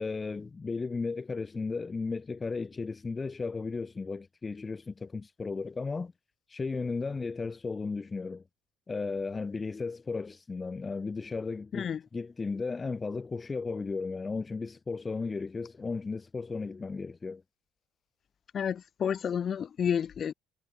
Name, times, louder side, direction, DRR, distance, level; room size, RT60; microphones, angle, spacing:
voice 1, 0.0-6.1 6.5-8.4 8.9-17.4, left 4 dB, 25° left, 1.5 m, -35 dB
voice 2, 18.5-20.3, left 8 dB, 45° left, 2.7 m, -30 dB
cardioid pair, 100°, 0 cm